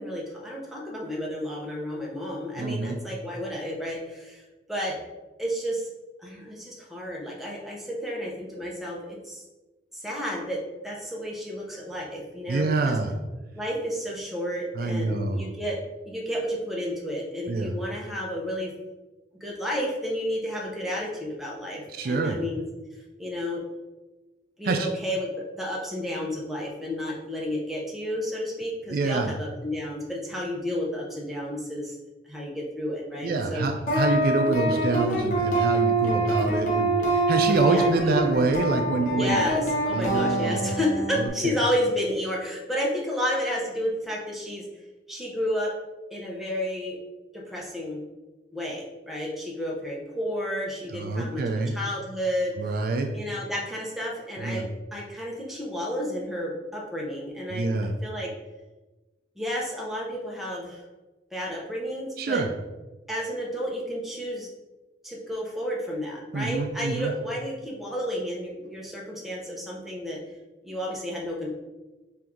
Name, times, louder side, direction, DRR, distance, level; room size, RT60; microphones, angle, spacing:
voice 1, 0.0-4.4 4.7-4.9 5.4-5.9 6.2-9.4 9.9-12.9 13.5-15.8 16.1-18.7 19.4-22.6 23.2-23.6 24.6-25.3 25.6-32.0 32.3-33.7 37.7-38.1 39.1-44.6 45.1-45.7 46.1-47.0 47.5-48.0 48.5-51.4 51.7-52.5 53.1-58.3 59.4-60.8 61.3-62.4 63.1-64.5 65.0-70.2 70.6-71.5, equal, ahead, -3 dB, 0.7 m, -31 dB
voice 2, 2.6-3.0 12.5-13.1 14.7-15.5 17.5-17.8 21.9-22.4 24.6-24.9 28.9-29.3 33.2-39.4 39.9-40.8 41.1-41.5 50.9-51.8 52.6-53.1 54.4-54.7 57.5-57.9 62.2-62.5 66.3-67.1, right 3 dB, 55° right, 4 dB, 0.4 m, -26 dB
sound 1, 33.9-41.3, right 2 dB, 45° left, 0.9 m, -25 dB
4.4 x 2.6 x 3.6 m, 1.1 s
head